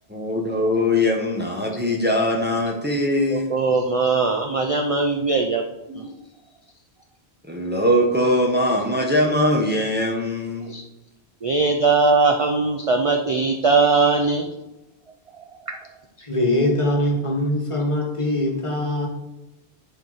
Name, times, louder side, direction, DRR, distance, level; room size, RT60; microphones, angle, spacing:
voice 1, 0.1-3.5 6.0-6.1 7.4-10.7, left 1 dB, 10° right, 0 dB, 1.0 m, -21 dB
voice 2, 3.3-5.6 5.9-6.1 10.7-10.8 11.4-14.5 16.2-16.3, right 4 dB, 40° right, 3 dB, 0.5 m, -20 dB
voice 3, 16.3-19.1, left 1 dB, 30° left, 0 dB, 1.4 m, -22 dB
10.5 x 4.5 x 4.0 m, 0.96 s
omnidirectional pair, 1.1 m